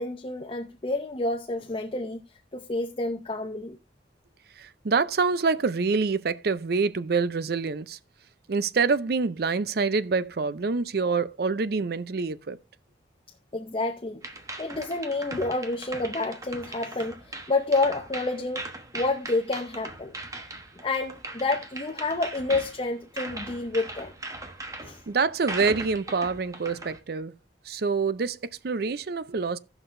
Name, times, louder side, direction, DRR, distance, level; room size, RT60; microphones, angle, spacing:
voice 1, 0.0-2.2 2.5-3.8 13.5-14.2 14.6-20.1 20.8-24.1 24.8-25.0, left 2 dB, 30° left, 0.6 m, -29 dB
voice 2, 4.6-8.0 8.5-12.6 25.1-27.3 27.7-29.6, right 4 dB, 60° right, 0.5 m, -26 dB
sound 1, 14.2-27.0, right 2 dB, 20° right, 1.0 m, -39 dB
17.0 x 5.9 x 2.6 m
head